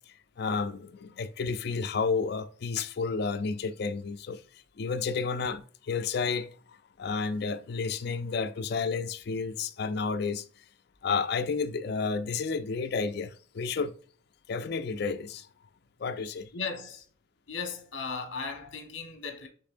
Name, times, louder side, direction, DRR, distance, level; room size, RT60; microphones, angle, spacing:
voice 1, 0.4-4.4 4.8-6.5 7.0-10.4 11.0-13.9 14.5-15.5 16.0-16.5, left 5 dB, 55° left, 0.4 m, -31 dB
voice 2, 16.5-17.1 17.5-19.5, left 5 dB, 70° left, 1.1 m, -36 dB
5.4 x 3.6 x 2.5 m
head